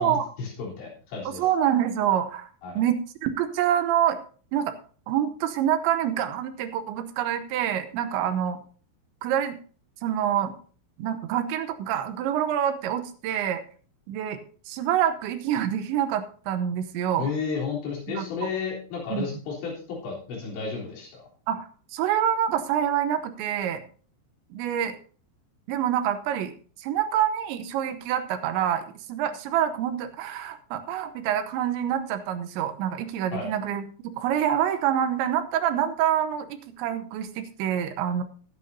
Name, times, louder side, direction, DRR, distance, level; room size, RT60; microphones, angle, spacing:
voice 1, 0.0-1.4 2.6-2.8 17.2-21.2 33.3-33.5, left 5 dB, 75° left, -3 dB, 5.9 m, -32 dB
voice 2, 1.3-2.5 2.8-4.2 4.5-4.7 5.1-8.6 9.2-9.6 10.0-10.5 11.0-13.6 14.1-14.4 14.7-17.3 18.1-18.5 19.1-19.2 21.5-23.8 24.5-25.0 25.7-26.5 26.8-38.2, right 10 dB, 80° right, 9 dB, 3.1 m, -26 dB
20.0 x 8.3 x 2.7 m, 0.41 s
omnidirectional pair, 5.3 m